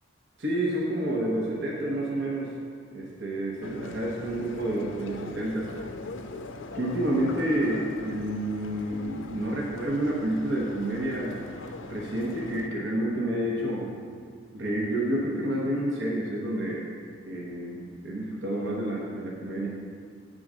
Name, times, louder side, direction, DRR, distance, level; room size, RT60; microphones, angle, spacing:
voice 1, 0.4-2.5 2.9-5.7 6.7-11.4 11.9-13.9 14.5-16.9 17.2-19.7, right 1 dB, 65° right, -4 dB, 1.0 m, -29 dB
sound 1, 3.6-12.7, left 3 dB, 80° left, 0.5 m, -42 dB
8.7 x 3.8 x 6.2 m, 2.1 s
head